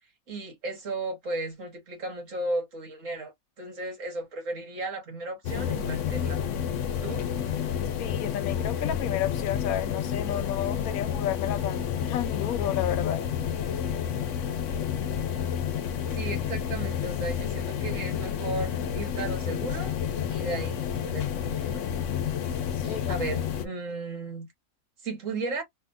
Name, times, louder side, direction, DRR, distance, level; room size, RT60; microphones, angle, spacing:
voice 1, 0.3-6.4 7.0-7.2 16.1-19.9 20.3-21.9 22.8-24.5 25.0-25.6, right 2 dB, 60° right, 1.8 m, -35 dB
sound 1, 5.4-23.6, left 8 dB, 65° left, 1.0 m, -30 dB
voice 2, 8.0-13.2 22.7-23.1, left 11 dB, 85° left, 1.1 m, -32 dB
3.6 x 2.7 x 2.6 m
omnidirectional pair, 1.5 m